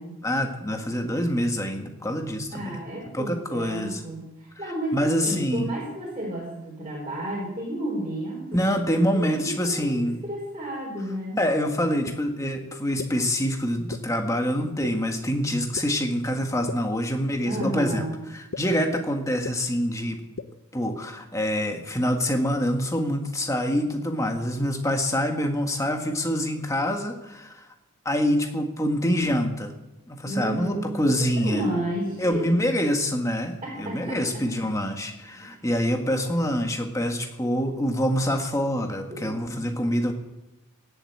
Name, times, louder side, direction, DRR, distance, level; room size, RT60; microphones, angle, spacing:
voice 1, 0.2-2.8 3.1-4.0 4.9-5.7 8.5-10.2 11.4-18.0 18.3-20.2 20.7-27.6 28.1-29.7 30.1-31.6 32.2-40.1, equal, 15° left, 4 dB, 1.6 m, -26 dB
voice 2, 2.5-8.6 9.1-11.4 17.5-18.2 20.3-20.4 30.2-32.5 33.6-34.4 35.3-35.5 39.1-39.6, right 1 dB, 25° right, -4 dB, 3.8 m, -32 dB
sound 1, 12.1-12.2 13.0-13.1 13.9-14.0 14.8-14.9 15.7-15.8 16.7-16.8 17.6-17.7 18.5-18.6 19.4-19.5 20.4-20.5, left 4 dB, 65° left, 0.7 m, -32 dB
17.0 x 7.9 x 8.6 m, 0.93 s
head